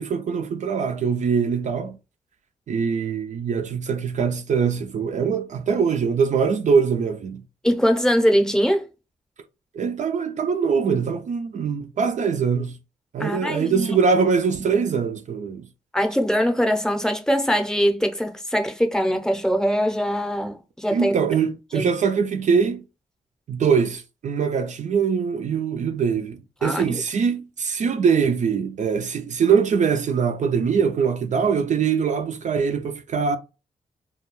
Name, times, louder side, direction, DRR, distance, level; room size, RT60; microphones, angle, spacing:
voice 1, 0.0-2.0 2.7-7.4 9.7-12.8 13.1-15.7 20.9-22.8 23.5-33.4, right 6 dB, 55° right, 0.4 m, -22 dB
voice 2, 7.6-8.8 13.2-13.9 15.9-21.1 21.7-21.9 26.6-26.8, equal, 5° left, 0.7 m, -22 dB
2.3 x 2.3 x 3.0 m
supercardioid pair, 55°, 15 cm